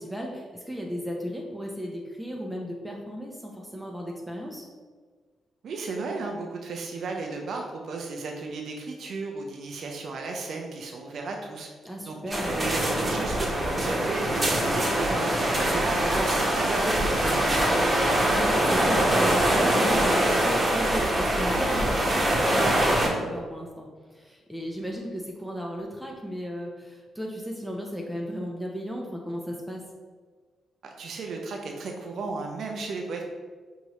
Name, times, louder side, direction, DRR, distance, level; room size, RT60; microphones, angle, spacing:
voice 1, 0.0-4.6 11.8-12.5 18.3-29.8, equal, 5° right, -1 dB, 0.7 m, -35 dB
voice 2, 5.6-11.7 12.1-15.3 15.6-17.8 30.8-33.2, right 3 dB, 65° right, 2 dB, 0.5 m, -34 dB
sound 1, 12.3-23.1, right 1 dB, 35° right, 1.1 m, -23 dB
4.6 x 2.7 x 3.0 m, 1.5 s
supercardioid pair, 50°, 0 cm